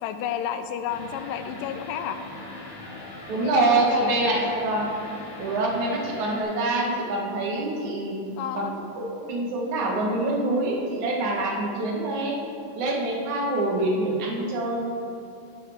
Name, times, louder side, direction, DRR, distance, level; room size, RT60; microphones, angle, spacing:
voice 1, 0.0-2.2 3.3-4.1 8.4-8.8, left 9 dB, 90° left, 9 dB, 2.3 m, -31 dB
sound 1, 0.9-6.4, left 2 dB, 65° left, 3.3 m, -40 dB
voice 2, 3.3-4.9 5.4-8.7 9.0-12.4 12.7-14.8, right 2 dB, 65° right, -1 dB, 2.6 m, -25 dB
11.0 x 11.0 x 3.5 m, 2.6 s
omnidirectional pair, 3.8 m